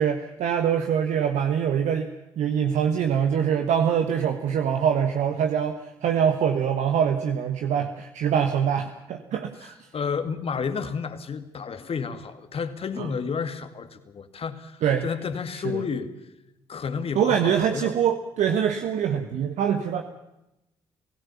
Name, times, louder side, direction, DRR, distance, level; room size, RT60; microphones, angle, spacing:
voice 1, 0.0-9.9 13.0-13.1 14.8-15.1 15.6-15.8 17.1-20.0, right 8 dB, 65° right, 6 dB, 1.4 m, -24 dB
voice 2, 9.9-16.1 16.7-17.9, left 6 dB, 50° left, 10 dB, 2.2 m, -31 dB
29.0 x 16.0 x 7.1 m, 0.90 s
hypercardioid pair, 50°, 13 cm